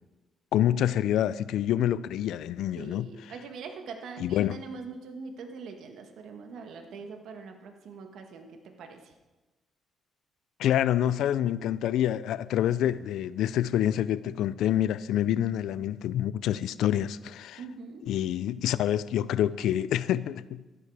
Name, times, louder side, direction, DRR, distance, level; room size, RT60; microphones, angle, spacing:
voice 1, 0.5-3.1 4.2-4.6 10.6-17.6 18.1-20.6, left 11 dB, 85° left, 0.4 m, -27 dB
voice 2, 2.8-9.1 17.6-18.0, right 4 dB, 75° right, 1.7 m, -43 dB
13.5 x 11.5 x 5.0 m
cardioid pair, 90°, 0 cm